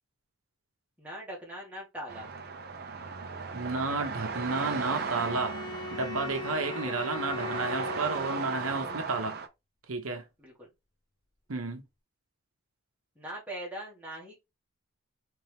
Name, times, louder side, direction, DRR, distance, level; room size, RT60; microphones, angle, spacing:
voice 1, 1.0-2.3 6.6-6.8 10.4-10.7 13.2-14.4, right 1 dB, 5° right, 1.8 m, -41 dB
sound 1, 2.1-9.5, right 4 dB, 45° right, 0.6 m, -37 dB
voice 2, 3.5-5.6 5.9-9.4 9.9-10.2 11.5-11.8, right 3 dB, 70° right, 0.9 m, -32 dB
Bowed string instrument, 4.1-8.9, left 5 dB, 20° left, 0.6 m, -40 dB
4.5 x 3.4 x 3.5 m
head